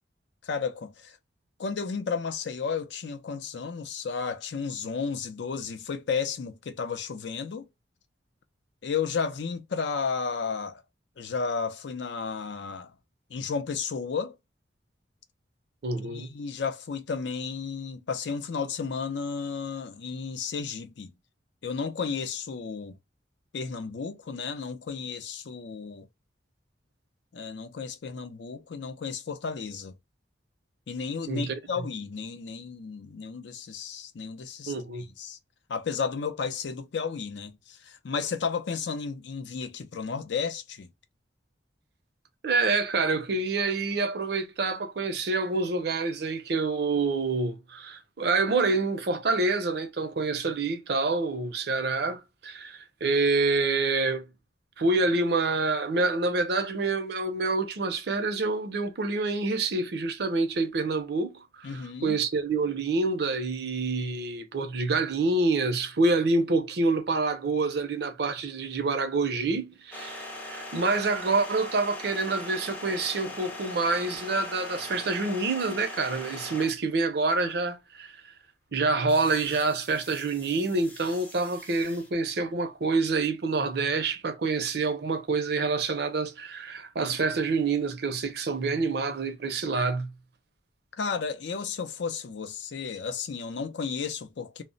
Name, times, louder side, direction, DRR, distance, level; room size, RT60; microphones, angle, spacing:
voice 1, 0.4-1.2 1.6-7.7 8.8-10.8 11.2-12.9 13.3-14.4 16.1-21.1 21.6-22.9 23.5-26.1 27.3-29.9 30.9-34.7 35.0-35.4 35.7-40.9 61.6-62.2 91.0-94.6, left 5 dB, 70° left, 0.4 m, -33 dB
voice 2, 15.8-16.3 31.3-31.8 34.7-35.0 42.4-54.2 54.8-78.2 78.7-90.1, right 3 dB, 60° right, 0.5 m, -27 dB
sound 1, 69.9-76.9 79.1-82.1, left 1 dB, 10° left, 0.4 m, -41 dB
2.0 x 2.0 x 3.7 m
head